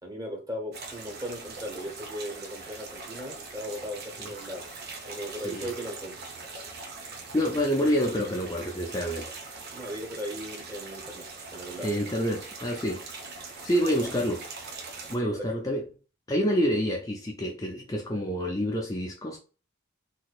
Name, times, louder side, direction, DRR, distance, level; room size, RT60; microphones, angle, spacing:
voice 1, 0.0-4.6 5.0-6.2 9.7-11.9 13.8-14.1 15.2-15.4, equal, 20° right, 1.1 m, -37 dB
sound 1, 0.7-15.2, right 3 dB, 50° right, 0.9 m, -42 dB
voice 2, 7.3-9.4 11.8-13.0 13.3-14.4 15.1-15.8 16.3-19.4, equal, 20° left, 0.5 m, -28 dB
4.0 x 2.7 x 2.4 m
head